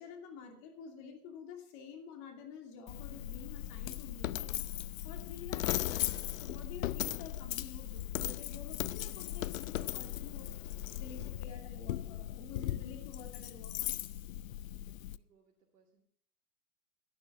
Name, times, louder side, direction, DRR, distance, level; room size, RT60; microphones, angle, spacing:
voice 1, 0.0-4.5 5.0-14.0, left 6 dB, 40° left, 3 dB, 2.8 m, -50 dB
Coin (dropping), 2.9-15.2, left 13 dB, 60° left, 0.6 m, -38 dB
voice 2, 14.5-16.0, right 4 dB, 85° right, 0 dB, 2.4 m, -70 dB
11.5 x 11.5 x 5.5 m, 0.65 s
hypercardioid pair, 130°, 45 cm